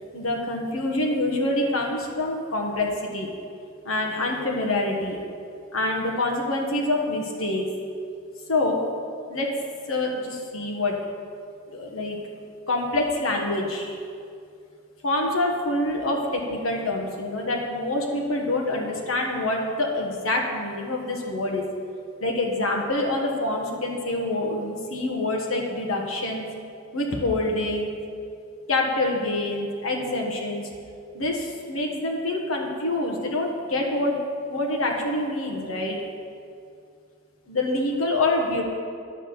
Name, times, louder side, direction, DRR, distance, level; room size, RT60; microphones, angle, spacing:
voice 1, 0.1-3.3 3.8-5.2 5.7-7.6 8.5-8.8 9.3-9.5 9.9-10.9 11.7-12.2 12.7-14.0 15.0-21.6 22.2-26.4 26.9-28.0 28.7-30.7 31.1-35.9 37.5-38.6, left 2 dB, 80° left, 0 dB, 1.4 m, -26 dB
10.0 x 6.1 x 6.9 m, 2.3 s
head